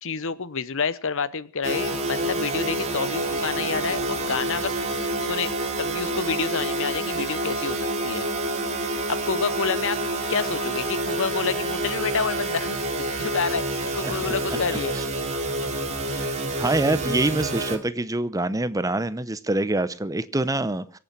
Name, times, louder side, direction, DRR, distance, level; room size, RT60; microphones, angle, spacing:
voice 1, 0.0-4.8 5.2-5.5 5.8-8.3 9.1-10.0 10.3-12.8 13.2-13.7 13.9-15.0, left 5 dB, 65° left, 0.9 m, -28 dB
sound 1, 1.6-17.8, right 1 dB, 30° right, 2.9 m, -28 dB
voice 2, 16.1-21.0, right 2 dB, 15° right, 0.7 m, -25 dB
24.0 x 8.6 x 6.0 m
head